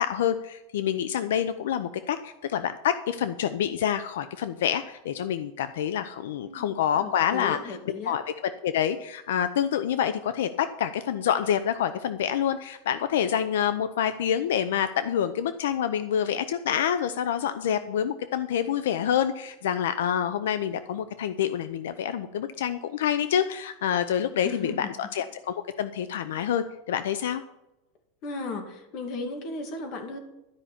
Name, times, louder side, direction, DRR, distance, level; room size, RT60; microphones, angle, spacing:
voice 1, 0.0-7.8 8.1-27.4, left 9 dB, 85° left, 11 dB, 0.6 m, -27 dB
voice 2, 6.4-6.7 7.0-8.2 24.4-24.9 28.2-30.2, left 3 dB, 45° left, 5 dB, 2.3 m, -35 dB
12.5 x 5.7 x 8.6 m, 0.95 s
supercardioid pair, 155°, 0 cm